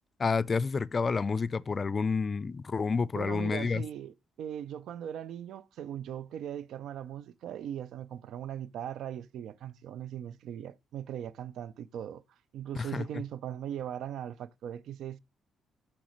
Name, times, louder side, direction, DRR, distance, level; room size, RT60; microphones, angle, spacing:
voice 1, 0.2-3.8 12.8-13.2, left 4 dB, 35° left, 0.3 m, -29 dB
voice 2, 3.1-12.2 12.5-15.2, right 10 dB, 75° right, 0.4 m, -39 dB
6.3 x 5.9 x 3.0 m
cardioid pair, 90°, 0 cm